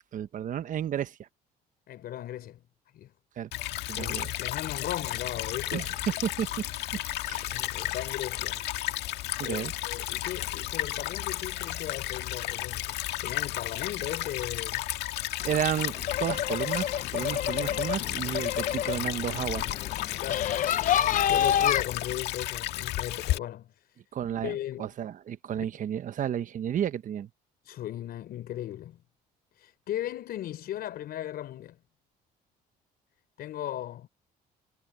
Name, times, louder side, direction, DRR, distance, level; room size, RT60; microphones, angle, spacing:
voice 1, 0.1-1.3 3.4-3.5 3.9-4.3 5.7-6.7 7.2-7.6 9.4-9.7 15.4-19.7 24.1-27.3, right 9 dB, 50° right, 1.1 m, -32 dB
voice 2, 1.9-2.7 2.9-3.1 3.9-5.9 7.5-8.6 9.1-14.9 18.3-18.4 19.8-19.9 20.2-20.6 21.3-24.0 24.4-24.9 27.6-29.0 29.5-31.8 33.4-34.1, left 12 dB, 65° left, 5.4 m, -37 dB
Stream / Trickle dribble, 3.5-23.4, left 15 dB, 85° left, 1.8 m, -33 dB
sound 1, 15.4-21.8, left 10 dB, 50° left, 0.6 m, -29 dB
cardioid pair, 110°, 17 cm